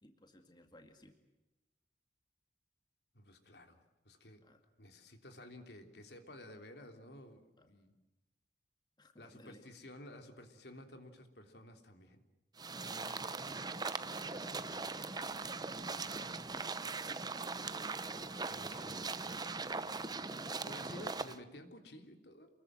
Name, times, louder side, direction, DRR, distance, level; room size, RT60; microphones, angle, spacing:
voice 1, 0.0-1.1 4.4-4.6 7.6-7.7 9.0-9.6 12.7-15.3 15.8-16.7 19.6-20.8, left 1 dB, 25° left, 5 dB, 2.2 m, -58 dB
voice 2, 3.1-4.4 4.8-7.9 9.2-12.2 18.0-19.2 20.6-22.5, left 1 dB, 65° left, 6 dB, 3.3 m, -53 dB
sound 1, 12.6-21.4, right 4 dB, 20° right, 0.9 m, -40 dB
28.5 x 21.5 x 7.7 m, 0.99 s
head